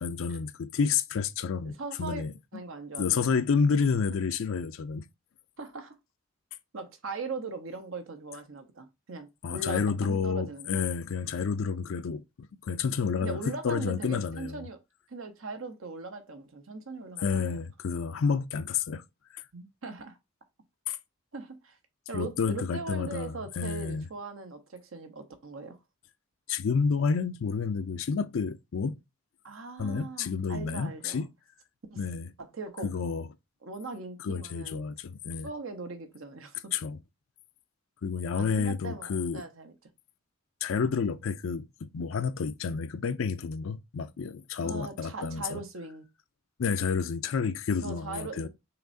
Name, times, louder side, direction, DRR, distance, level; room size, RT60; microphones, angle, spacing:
voice 1, 0.0-2.3 3.0-5.0 9.4-14.6 17.2-19.0 19.3-19.4 20.9-21.0 22.1-24.1 26.5-28.9 29.8-31.3 32.0-32.3 32.8-33.3 34.2-35.5 36.7-37.0 38.0-39.4 40.6-45.6 46.6-48.5, left 5 dB, 75° left, 0.4 m, -30 dB
voice 2, 1.6-2.2 2.5-3.2 5.6-6.0 6.7-10.8 13.2-14.8 15.1-17.6 19.5-20.2 21.3-21.8 22.1-25.8 29.4-31.3 31.9-32.0 32.4-32.9 33.6-34.9 35.4-36.7 38.3-39.7 44.6-46.0 47.8-48.5, right 3 dB, 80° right, 0.9 m, -40 dB
5.7 x 3.2 x 2.6 m
head